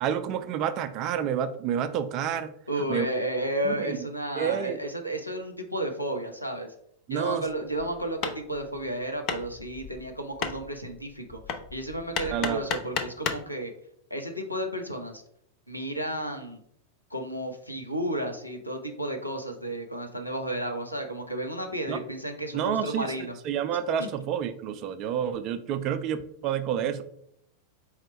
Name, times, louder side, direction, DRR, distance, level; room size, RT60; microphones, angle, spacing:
voice 1, 0.0-2.5 2.9-3.1 3.6-4.1 4.4-4.8 7.1-7.5 12.3-12.6 21.9-22.0 22.5-23.1 23.4-27.0, right 9 dB, 40° right, 10 dB, 0.3 m, -29 dB
voice 2, 2.7-6.7 7.1-11.4 11.7-13.7 14.1-15.2 15.7-16.6 17.1-23.4 24.0-24.1, right 1 dB, 90° left, 4 dB, 0.6 m, -32 dB
Hammer, 7.7-13.5, left 6 dB, 40° left, 0.5 m, -35 dB
4.2 x 2.1 x 4.0 m, 0.70 s
figure-of-eight pair, 90°, 0 cm